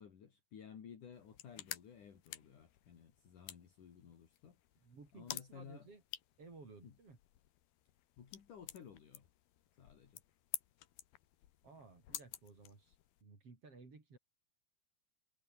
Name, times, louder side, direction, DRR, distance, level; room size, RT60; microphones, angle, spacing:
voice 1, 0.0-4.6 5.1-5.9 6.8-6.9 8.2-9.3 9.8-10.2, left 7 dB, 60° left, 4.2 m, -55 dB
sound 1, 1.1-13.2, left 13 dB, 85° left, 3.4 m, -51 dB
voice 2, 4.8-6.0 6.4-7.2 11.6-14.2, right 4 dB, 40° right, 5.3 m, -57 dB
omnidirectional pair, 4.3 m